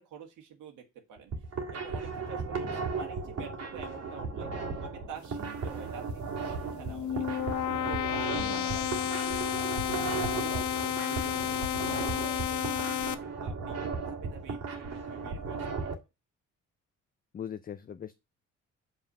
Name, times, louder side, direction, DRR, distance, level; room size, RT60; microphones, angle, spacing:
voice 1, 0.0-1.4 1.7-4.5 4.8-7.4 7.8-9.8 10.2-13.8 14.1-15.9, right 7 dB, 85° right, 1.6 m, -47 dB
sound 1, 1.2-15.9, right 4 dB, 55° right, 1.7 m, -36 dB
sound 2, 6.6-13.1, left 11 dB, 70° left, 0.7 m, -31 dB
voice 2, 8.4-8.7 17.3-18.2, left 8 dB, 30° left, 0.4 m, -40 dB
5.6 x 3.5 x 5.5 m
cardioid pair, 90°, 30 cm